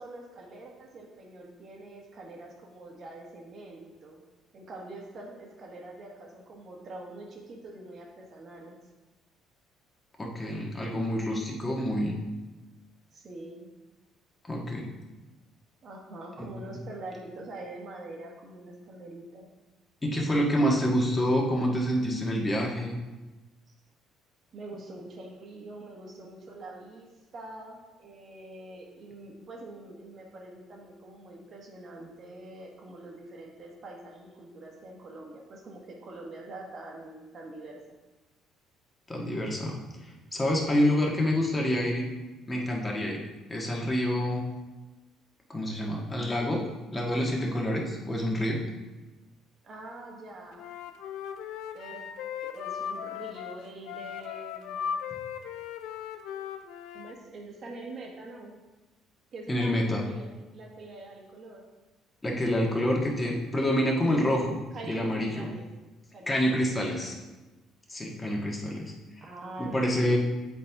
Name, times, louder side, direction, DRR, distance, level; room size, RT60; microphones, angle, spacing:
voice 1, 0.0-4.2 4.5-8.8 13.1-13.7 15.8-19.4 24.5-37.8 49.6-50.7 51.7-52.1 52.4-54.8 56.9-58.5 59.3-61.6 64.7-65.6 66.1-67.0 69.2-70.2, right 2 dB, 50° right, 0 dB, 1.6 m, -44 dB
voice 2, 10.2-12.2 14.5-14.9 16.4-16.5 20.0-22.9 39.1-39.8 40.3-42.1 42.5-44.4 45.5-46.7 46.9-48.6 59.5-60.1 62.2-64.6 64.9-65.5 66.3-67.1 67.9-68.9 69.6-70.2, equal, 25° left, -1 dB, 1.6 m, -27 dB
Wind instrument woodwind instrument, 50.5-57.2, left 8 dB, 75° left, 0.4 m, -37 dB
8.3 x 4.2 x 3.6 m, 1.1 s
hypercardioid pair, 60°, 0 cm